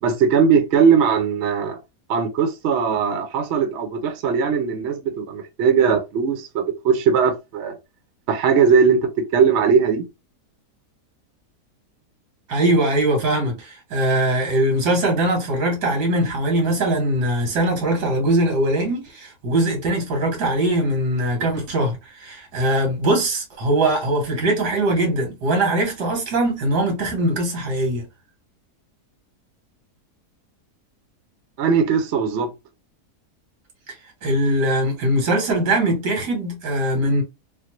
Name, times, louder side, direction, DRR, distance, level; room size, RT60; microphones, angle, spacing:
voice 1, 0.0-1.8 2.1-7.8 8.3-10.0 31.6-32.5, right 6 dB, 55° right, 0.8 m, -19 dB
voice 2, 12.5-28.1 33.9-34.0 34.2-37.2, right 1 dB, 85° right, 1.9 m, -21 dB
3.5 x 2.1 x 3.0 m
omnidirectional pair, 1.7 m